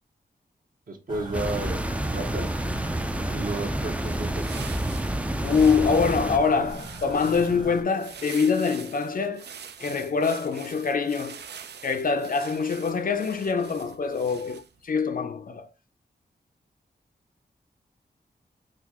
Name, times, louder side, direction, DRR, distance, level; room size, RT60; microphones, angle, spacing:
voice 1, 0.9-2.5 3.3-4.6, right 2 dB, 55° right, 0.9 m, -33 dB
sound 1, 1.1-7.8, right 1 dB, 25° right, 1.0 m, -39 dB
sound 2, 1.3-6.4, right 1 dB, 10° right, 0.3 m, -29 dB
sound 3, 3.9-14.8, right 7 dB, 75° right, 0.4 m, -45 dB
voice 2, 5.4-9.5 9.8-11.4 11.8-15.7, left 5 dB, 55° left, 0.5 m, -24 dB
3.9 x 2.4 x 2.8 m
wide cardioid pair, 95°, 18 cm